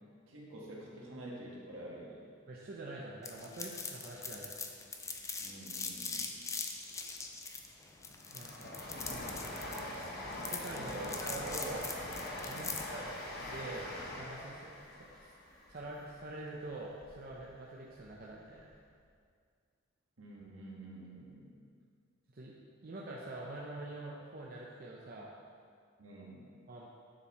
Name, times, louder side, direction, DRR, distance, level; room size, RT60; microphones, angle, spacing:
voice 1, 0.3-2.2 5.4-6.3 10.7-11.2 11.6-11.7 12.5-12.8 20.2-21.6 26.0-26.4, right 1 dB, 75° right, -4 dB, 1.7 m, -48 dB
voice 2, 2.5-4.6 8.3-8.7 9.1-9.5 10.5-11.9 12.4-13.9 14.1-15.3 15.7-18.7 22.3-22.6 22.8-25.3 26.7-26.9, right 2 dB, 45° right, -4 dB, 0.7 m, -45 dB
sound 1, 3.2-13.0, left 4 dB, 15° left, 0.4 m, -42 dB
Train, 7.2-17.4 17.8-18.7 19.0-19.1, left 1 dB, 50° left, 1.1 m, -44 dB
10.0 x 4.5 x 4.2 m, 2.1 s
head